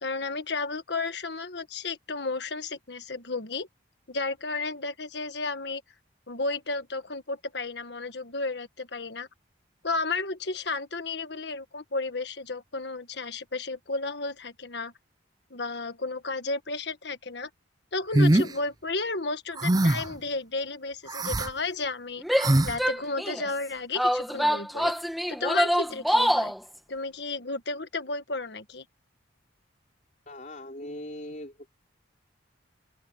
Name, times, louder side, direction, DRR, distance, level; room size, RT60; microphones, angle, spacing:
voice 1, 0.0-3.7 4.1-5.8 6.3-9.3 9.8-14.9 15.5-17.5 17.9-22.2 22.6-24.9 25.3-26.5 26.9-28.8, left 3 dB, 60° left, 1.5 m, -33 dB
sound 1, 18.1-18.5 19.6-20.1 21.1-21.5 22.4-22.8, right 1 dB, 20° right, 0.6 m, -22 dB
Female speech woman speaking / Yell, 22.2-23.5 24.0-26.6, equal, ahead, 1.4 m, -25 dB
voice 2, 30.3-31.7, left 1 dB, 40° left, 4.5 m, -40 dB
open air
head